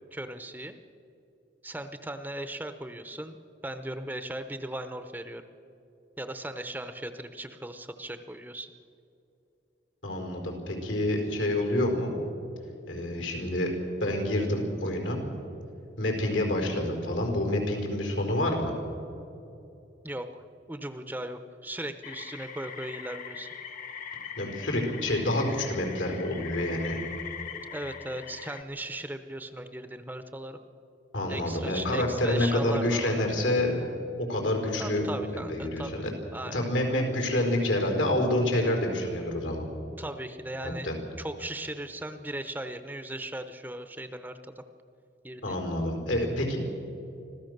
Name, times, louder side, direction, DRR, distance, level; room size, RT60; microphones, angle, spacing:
voice 1, 0.1-0.7 1.6-5.4 6.2-8.7 20.0-23.5 27.7-30.6 31.3-33.2 34.8-36.0 36.3-36.6 40.0-40.9 41.2-44.6 45.2-45.6, right 1 dB, 10° right, 9 dB, 0.7 m, -38 dB
voice 2, 10.0-12.1 12.9-13.7 14.0-15.2 16.0-18.7 24.4-27.0 31.1-33.9 34.2-35.0 35.3-36.1 36.4-39.7 40.6-40.9 45.4-46.6, left 1 dB, 85° left, 2 dB, 4.6 m, -28 dB
sound 1, 22.0-28.6, left 7 dB, 45° left, 1.1 m, -41 dB
25.5 x 15.5 x 6.7 m, 2.7 s
head